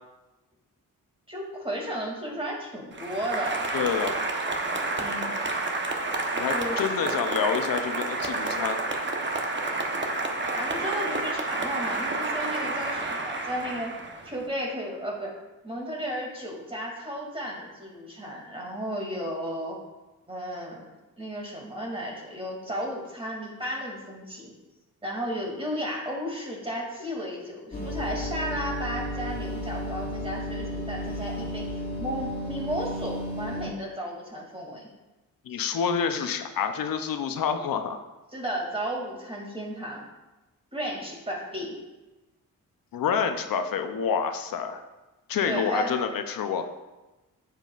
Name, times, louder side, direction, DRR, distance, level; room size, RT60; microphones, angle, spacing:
voice 1, 1.3-3.6 5.0-5.3 6.5-6.9 10.5-13.9 14.2-15.3 15.6-19.8 20.3-20.9 21.2-24.5 25.0-31.7 32.0-34.9 35.5-35.6 38.3-40.0 40.7-41.8 45.4-46.0, equal, 15° right, -2 dB, 2.5 m, -34 dB
Applause, 2.9-14.4, right 2 dB, 35° right, 1.1 m, -30 dB
voice 2, 3.7-4.1 6.4-8.8 35.5-38.0 42.9-44.8 45.3-46.6, left 7 dB, 80° left, 7 dB, 0.7 m, -28 dB
sound 1, 27.7-33.7, equal, 30° left, 2.2 m, -33 dB
9.0 x 7.4 x 2.5 m, 1.1 s
cardioid pair, 75°, 34 cm